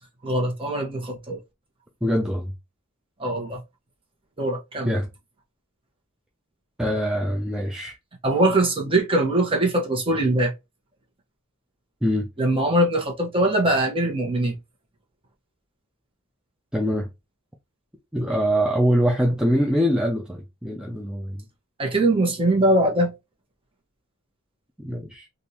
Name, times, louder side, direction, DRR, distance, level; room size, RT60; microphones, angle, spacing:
voice 1, 0.2-1.4 3.2-3.6 4.4-4.9 8.2-10.5 12.4-14.5 21.8-23.1, right 1 dB, 25° right, 1.3 m, -22 dB
voice 2, 2.0-2.5 4.9-5.1 6.8-8.0 12.0-12.3 16.7-17.1 18.1-21.4 24.8-25.3, equal, 5° right, 0.5 m, -23 dB
3.6 x 2.6 x 2.8 m
head